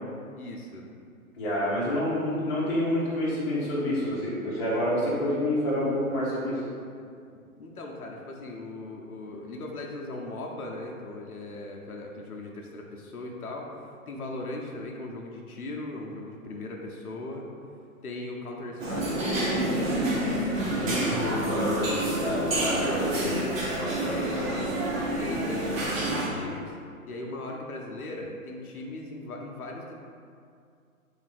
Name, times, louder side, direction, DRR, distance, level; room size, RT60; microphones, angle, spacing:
voice 1, 0.4-0.9 7.3-13.7 14.1-17.5 18.0-21.9 24.0-26.8 27.1-29.9, left 2 dB, 85° left, 0 dB, 0.7 m, -39 dB
voice 2, 1.4-6.6 20.7-23.4 23.7-24.5, left 1 dB, 20° left, -8 dB, 0.8 m, -28 dB
sound 1, 18.8-26.3, right 1 dB, 60° right, 1.2 m, -28 dB
3.3 x 2.6 x 3.9 m, 2.4 s
hypercardioid pair, 145°, 43 cm